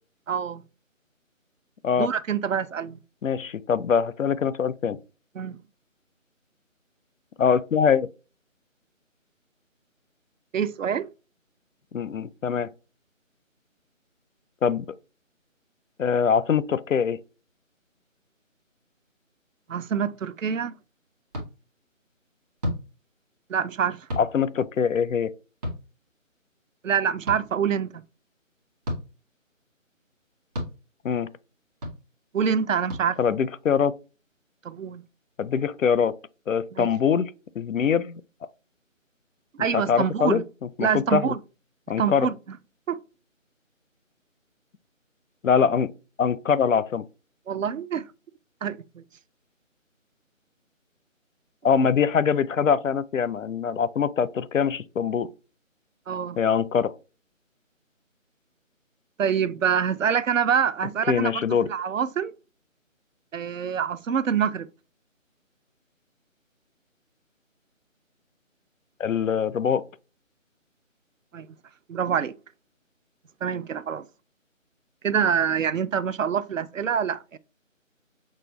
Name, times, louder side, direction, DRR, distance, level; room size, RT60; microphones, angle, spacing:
voice 1, 0.3-0.6 2.0-3.0 5.4-5.6 10.5-11.1 19.7-20.8 23.5-24.1 26.8-28.0 32.3-33.2 34.6-35.0 36.8-36.9 39.6-40.4 40.8-41.4 42.0-42.3 42.9-43.0 47.5-48.0 48.6-49.0 56.1-56.4 59.2-61.4 61.7-62.3 63.3-64.7 71.3-71.5 71.9-72.3 73.4-74.0 75.0-77.4, right 7 dB, 70° right, 0.5 m, -25 dB
voice 2, 3.2-5.0 7.4-8.1 11.9-12.7 14.6-14.9 16.0-17.2 24.2-25.3 31.0-31.3 33.2-33.9 35.4-36.1 36.5-37.3 37.6-38.2 39.7-40.4 40.8-41.3 41.9-42.3 45.4-45.9 46.2-47.0 51.6-55.3 56.4-56.9 61.1-61.7 69.0-69.8, left 7 dB, 75° left, 0.5 m, -23 dB
sound 1, 21.3-21.5 22.6-22.8 24.1-24.3 25.6-25.8 27.3-27.4 28.8-29.0 30.5-30.7 31.8-32.0 32.9-33.0, left 1 dB, 30° right, 1.3 m, -30 dB
6.1 x 2.2 x 3.1 m
figure-of-eight pair, 160°, 40 cm